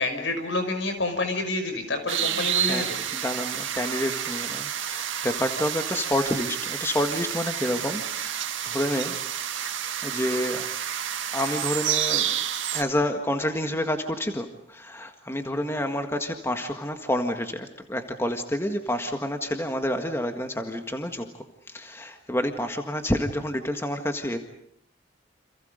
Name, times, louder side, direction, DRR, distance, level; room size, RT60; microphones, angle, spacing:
voice 1, 0.0-3.0, left 2 dB, 75° left, 7 dB, 5.9 m, -28 dB
sound 1, 2.1-12.8, right 10 dB, 90° right, 2.1 m, -29 dB
voice 2, 2.2-2.9 3.1-9.2 9.5-9.7 10.0-10.7 11.3-12.4 12.7-21.3 21.7-24.4, left 1 dB, 15° left, 5 dB, 1.7 m, -29 dB
29.0 x 28.0 x 5.2 m, 0.67 s
head